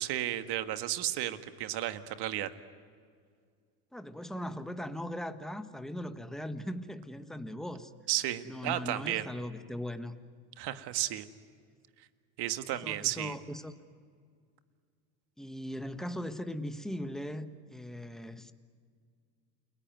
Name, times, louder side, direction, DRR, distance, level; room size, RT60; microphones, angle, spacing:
voice 1, 0.0-2.5 8.1-9.3 10.6-11.2 12.4-13.4, right 13 dB, 55° right, 9 dB, 1.8 m, -33 dB
voice 2, 3.9-7.9 8.4-10.1 12.7-13.7 15.4-18.5, left 1 dB, ahead, 8 dB, 1.5 m, -39 dB
29.5 x 21.5 x 9.5 m, 2.1 s
supercardioid pair, 95°, 48 cm